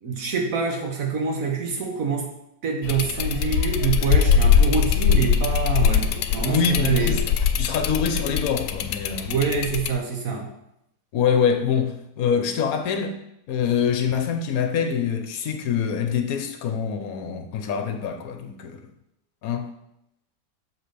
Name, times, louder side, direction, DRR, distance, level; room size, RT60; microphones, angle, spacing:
voice 1, 0.0-2.3 2.6-7.2 9.3-10.5, right 5 dB, 55° right, 1.6 m, -26 dB
sound 1, 2.8-9.9, left 7 dB, 85° left, 1.2 m, -21 dB
voice 2, 6.5-7.2 7.6-9.3 11.1-13.2 13.5-18.8 19.4-19.7, left 7 dB, 65° left, 1.2 m, -25 dB
6.7 x 4.9 x 5.1 m
omnidirectional pair, 1.8 m